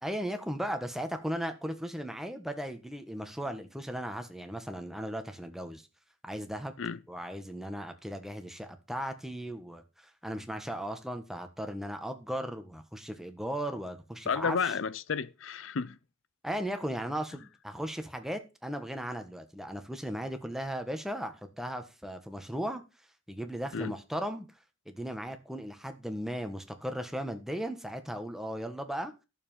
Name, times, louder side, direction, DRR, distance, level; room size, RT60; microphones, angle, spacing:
voice 1, 0.0-5.8 6.2-6.7 7.1-14.7 16.4-22.8 23.3-24.5 24.8-29.1, equal, ahead, 1.4 m, -37 dB
voice 2, 14.3-16.0 23.7-24.0, left 5 dB, 80° left, 0.6 m, -32 dB
12.0 x 7.3 x 5.6 m
head